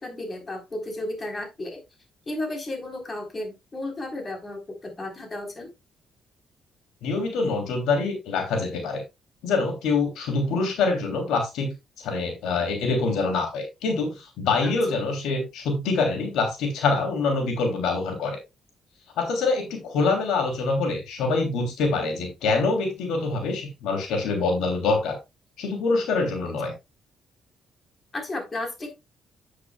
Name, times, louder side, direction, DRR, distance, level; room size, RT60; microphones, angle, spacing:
voice 1, 0.0-1.8 2.3-5.7 14.6-14.7 21.9-22.2 26.4-26.5 28.1-28.9, left 1 dB, 30° left, 4.2 m, -33 dB
voice 2, 7.0-9.0 9.4-18.4 19.2-25.2 25.6-26.7, left 3 dB, 85° left, 3.1 m, -25 dB
10.0 x 9.0 x 2.4 m
cardioid pair, 90°, 0 cm